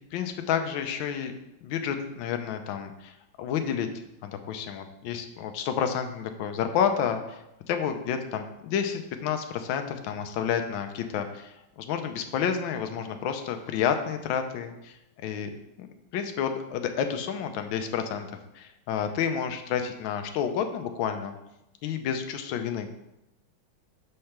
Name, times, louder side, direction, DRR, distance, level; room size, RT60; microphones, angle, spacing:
voice 1, 0.1-1.3 1.6-3.9 4.2-7.4 7.7-15.0 15.2-15.5 15.8-15.9 16.1-18.3 18.5-21.3 21.8-22.9, left 8 dB, 70° left, 6 dB, 1.3 m, -30 dB
6.6 x 3.3 x 5.8 m, 0.88 s
omnidirectional pair, 2.3 m